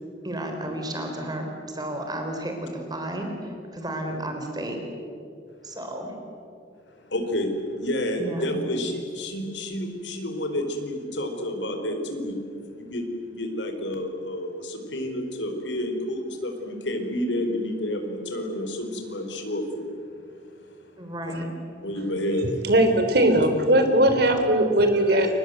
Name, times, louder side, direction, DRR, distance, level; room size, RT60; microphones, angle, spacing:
voice 1, 0.2-4.8 5.6-6.1 8.2-8.6 21.0-21.5 24.3-24.4 25.1-25.2, right 1 dB, 20° right, 3 dB, 3.9 m, -32 dB
voice 2, 6.9-20.0 21.8-22.6, left 1 dB, 90° left, 5 dB, 4.6 m, -30 dB
voice 3, 22.6-25.3, right 1 dB, 60° right, 7 dB, 3.7 m, -19 dB
29.5 x 24.0 x 8.0 m, 2.4 s
head